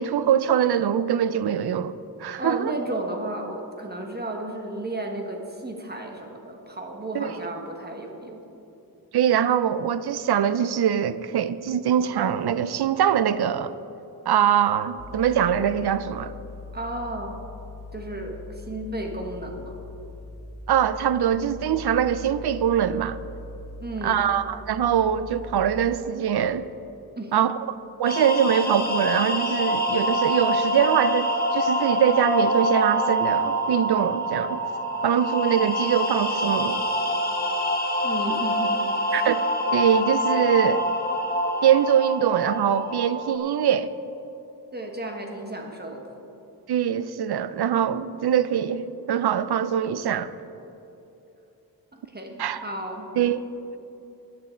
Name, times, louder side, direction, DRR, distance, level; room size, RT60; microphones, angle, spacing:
voice 1, 0.0-1.9 2.2-2.7 7.1-7.3 9.1-13.7 14.3-16.3 20.7-23.2 24.0-26.7 27.3-34.6 35.0-36.8 39.1-39.4 39.7-40.8 41.6-43.9 46.7-50.3 52.4-52.6 53.2-53.4, right 9 dB, 80° right, 14 dB, 0.5 m, -23 dB
voice 2, 2.4-8.4 16.7-17.4 17.9-19.8 23.8-24.3 27.2-27.3 38.0-39.2 44.7-46.1 52.1-53.1, right 1 dB, 25° right, 1 dB, 1.3 m, -33 dB
sound 1, 15.0-26.0, left 2 dB, 40° left, 0.7 m, -41 dB
sound 2, 28.1-43.4, equal, 25° left, 1.3 m, -25 dB
14.0 x 8.8 x 4.4 m, 3.0 s
wide cardioid pair, 110°, 38 cm